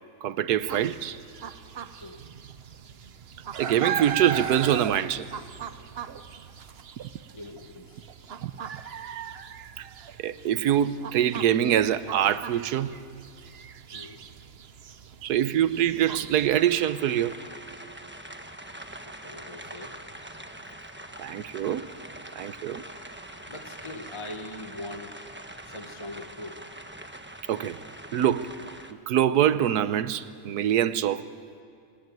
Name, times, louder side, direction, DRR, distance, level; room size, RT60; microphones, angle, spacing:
voice 1, 0.2-1.2 3.6-5.3 8.4-8.5 9.8-9.9 10.2-13.0 15.2-17.4 21.2-21.9 22.4-22.8 27.5-27.8 28.1-28.5 29.1-31.2, right 10 dB, 85° right, 1.3 m, -24 dB
sound 1, 0.6-16.6, right 8 dB, 50° right, 0.9 m, -38 dB
voice 2, 7.3-8.1 13.9-14.2 19.0-20.0 23.5-25.2 25.6-26.7, left 2 dB, 20° left, 1.2 m, -42 dB
sound 2, 16.5-28.9, right 1 dB, 10° right, 0.9 m, -43 dB
20.5 x 18.0 x 9.3 m
omnidirectional pair, 1.6 m